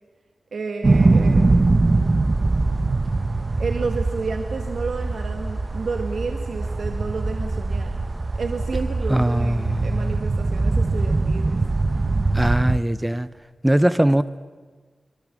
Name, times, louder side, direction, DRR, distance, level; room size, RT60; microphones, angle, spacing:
voice 1, 0.5-1.6 3.6-7.9 8.3-11.6, right 4 dB, 90° right, 1.6 m, -31 dB
sound 1, 0.8-12.8, right 3 dB, 35° right, 1.0 m, -22 dB
voice 2, 9.1-10.1 12.3-13.3 13.6-14.2, right 1 dB, 10° right, 0.6 m, -20 dB
25.0 x 23.5 x 7.4 m
wide cardioid pair, 135°, 0 cm